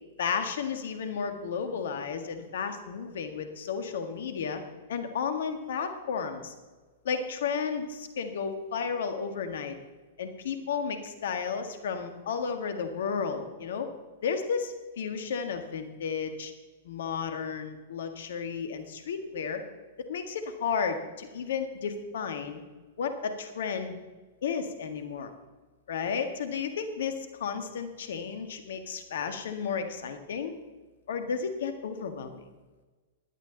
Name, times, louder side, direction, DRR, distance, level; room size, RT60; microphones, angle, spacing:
voice 1, 0.2-4.6 4.9-6.5 7.0-9.7 10.2-13.9 14.2-16.5 16.8-19.6 20.1-22.6 23.0-24.0 24.4-25.3 25.9-30.5 31.1-32.4, left 6 dB, 65° left, 8 dB, 1.7 m, -33 dB
16.5 x 11.0 x 4.0 m, 1.3 s
hypercardioid pair, 110°, 0 cm